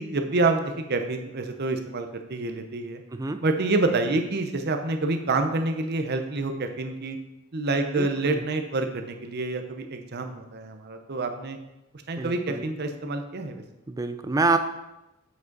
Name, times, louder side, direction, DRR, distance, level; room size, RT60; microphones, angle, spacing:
voice 1, 0.0-3.0 3.4-7.2 7.5-11.6 12.1-13.6, right 3 dB, 50° right, 6 dB, 0.7 m, -27 dB
voice 2, 3.1-3.4 7.9-8.4 12.2-12.6 13.9-14.6, right 3 dB, 15° right, 9 dB, 0.4 m, -27 dB
8.1 x 5.1 x 4.0 m, 0.96 s
head